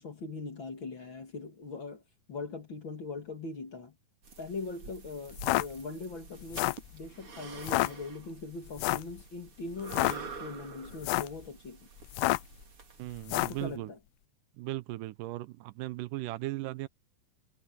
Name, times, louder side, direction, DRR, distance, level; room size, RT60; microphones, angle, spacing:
voice 1, 0.0-2.0 2.3-4.0 4.4-11.9 13.3-14.0, left 3 dB, 40° left, 2.3 m, -41 dB
sound 1, 4.2-13.7, right 5 dB, 40° right, 3.8 m, -48 dB
sound 2, 5.3-5.7 6.4-6.9 7.6-7.9 8.8-9.1 9.8-10.2 10.9-11.4 12.1-12.5 13.2-13.6, left 19 dB, 85° left, 1.8 m, -28 dB
voice 2, 13.0-13.9 14.6-16.9, right 17 dB, 80° right, 2.1 m, -37 dB
omnidirectional pair, 4.1 m